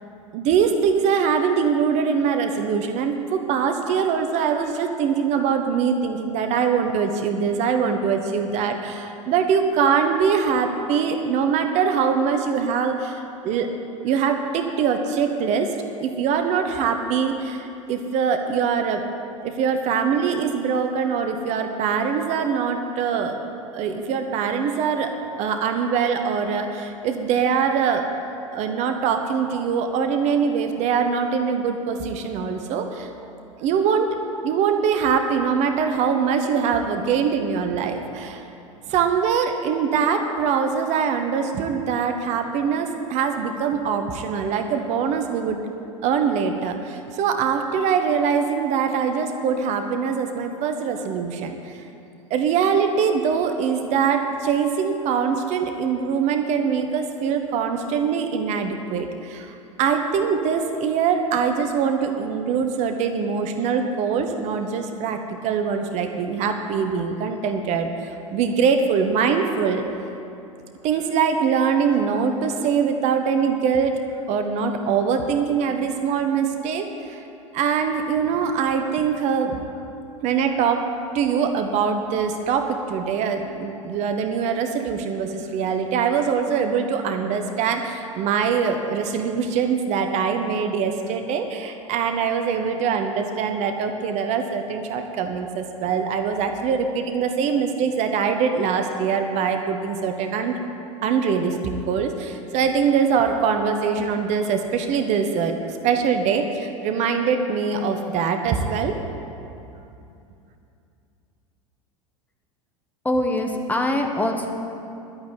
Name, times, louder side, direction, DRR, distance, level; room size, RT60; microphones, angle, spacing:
voice 1, 0.3-13.7 14.0-15.7 16.0-19.0 19.4-23.4 23.7-25.1 25.4-28.1 28.5-33.1 33.6-34.1 34.4-38.4 38.9-45.6 46.0-51.8 52.3-69.9 70.8-74.0 74.3-77.2 77.5-79.6 80.2-80.9 81.1-100.6 101.0-109.0, right 6 dB, 40° right, 6 dB, 1.1 m, -23 dB
voice 2, 113.0-114.5, left 1 dB, 10° left, 3 dB, 1.3 m, -23 dB
11.5 x 8.9 x 9.5 m, 2.7 s
figure-of-eight pair, 80°, 18 cm